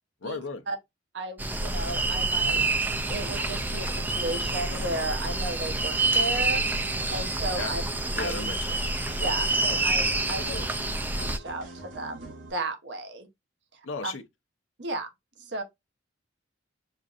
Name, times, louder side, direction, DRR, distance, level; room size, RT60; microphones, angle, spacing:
voice 1, 0.2-0.6 7.6-7.7 8.1-8.9 10.4-10.7 13.8-14.2, left 4 dB, 85° left, 0.7 m, -35 dB
voice 2, 1.1-6.6 7.1-7.8 8.2-8.4 9.2-10.6 11.2-13.3 14.0-14.1 14.8-15.1 15.4-15.6, right 2 dB, 65° right, 0.9 m, -34 dB
sound 1, 1.4-11.4, right 2 dB, 10° right, 0.3 m, -27 dB
sound 2, 2.9-12.5, right 1 dB, 90° right, 1.4 m, -44 dB
6.5 x 2.5 x 2.4 m
head